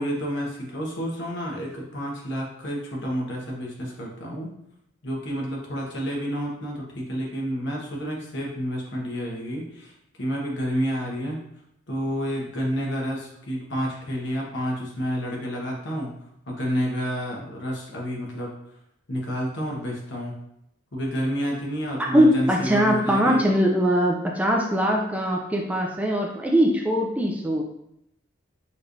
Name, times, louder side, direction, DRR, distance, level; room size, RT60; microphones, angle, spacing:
voice 1, 0.0-4.5 5.0-9.9 10.2-11.4 11.9-16.1 16.5-18.5 19.1-20.3 20.9-23.4, equal, 60° left, -2 dB, 1.3 m, -29 dB
voice 2, 22.1-27.6, equal, 10° right, -1 dB, 0.4 m, -21 dB
5.9 x 3.1 x 2.6 m, 0.78 s
head